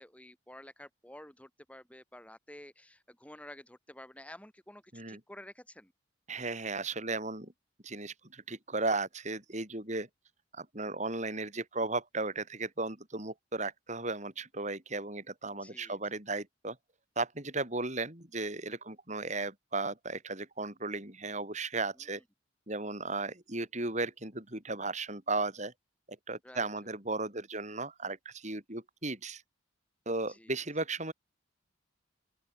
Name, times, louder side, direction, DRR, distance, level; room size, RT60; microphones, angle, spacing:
voice 1, 0.0-4.8 5.1-5.9 15.6-16.0 26.4-26.7 30.3-30.5, left 1 dB, 5° left, 5.6 m, -51 dB
voice 2, 6.3-7.5 7.8-10.1 10.6-16.8 17.1-22.2 22.7-25.7 26.3-29.4 30.0-31.1, right 3 dB, 40° right, 6.7 m, -35 dB
open air
head